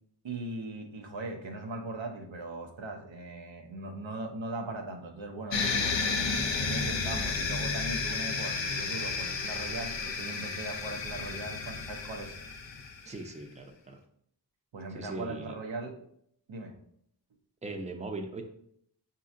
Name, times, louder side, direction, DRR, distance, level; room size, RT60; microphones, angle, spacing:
voice 1, 0.2-6.0 6.6-12.3 14.7-16.0 16.5-16.7, right 2 dB, 80° right, 3 dB, 0.7 m, -39 dB
sound 1, 5.5-13.1, left 4 dB, 75° left, 0.6 m, -32 dB
voice 2, 13.1-14.0 14.9-15.5 17.6-18.4, right 2 dB, 15° right, 4 dB, 0.5 m, -39 dB
5.9 x 2.8 x 2.5 m, 0.69 s
wide cardioid pair, 55°, 45 cm